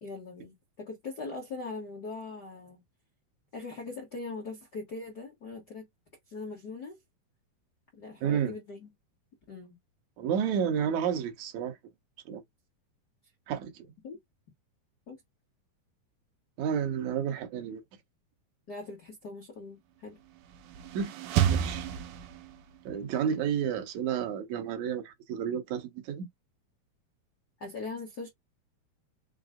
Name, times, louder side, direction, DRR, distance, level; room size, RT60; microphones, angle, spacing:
voice 1, 0.0-2.8 3.5-5.9 6.3-7.0 7.9-8.9 9.5-9.8 14.0-14.2 15.1-15.2 18.7-20.2 27.6-28.3, left 3 dB, 85° left, 0.8 m, -41 dB
voice 2, 8.2-8.5 10.2-11.8 12.3-12.4 13.5-13.9 16.6-17.8 20.9-21.1 21.5-21.9 22.9-26.3, right 8 dB, 65° right, 1.9 m, -31 dB
sound 1, 20.4-22.8, right 10 dB, 80° right, 1.8 m, -30 dB
6.0 x 2.1 x 3.7 m
omnidirectional pair, 4.4 m